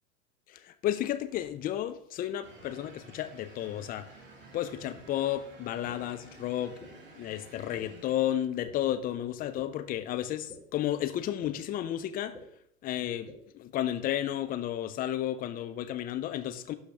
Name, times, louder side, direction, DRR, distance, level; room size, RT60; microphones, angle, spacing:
voice 1, 0.5-4.1 4.5-6.7 7.2-12.3 12.8-16.7, left 12 dB, 20° left, 0.6 m, -32 dB
sound 1, 2.4-8.7, right 2 dB, 25° right, 2.5 m, -52 dB
sound 2, 5.0-5.1 5.9-6.0 6.8-6.9 7.7-7.8 8.6-8.7 9.6-9.7 10.5-10.6 11.4-11.5 12.3-12.4 13.3-13.4, left 2 dB, ahead, 3.0 m, -47 dB
12.0 x 4.8 x 3.3 m
figure-of-eight pair, 90°, 40 cm